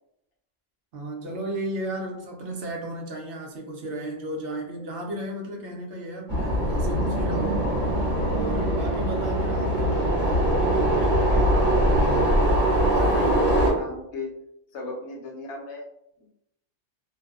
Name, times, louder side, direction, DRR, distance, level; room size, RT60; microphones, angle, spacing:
voice 1, 0.9-7.7 8.3-11.3 12.0-12.5 12.8-13.4, right 1 dB, 65° right, 1 dB, 0.8 m, -34 dB
sound 1, 6.3-13.7, right 1 dB, 35° right, 1.2 m, -22 dB
voice 2, 13.1-14.3 14.7-15.8, left 2 dB, 75° left, -1 dB, 1.0 m, -35 dB
2.6 x 2.1 x 2.4 m, 0.78 s
omnidirectional pair, 1.2 m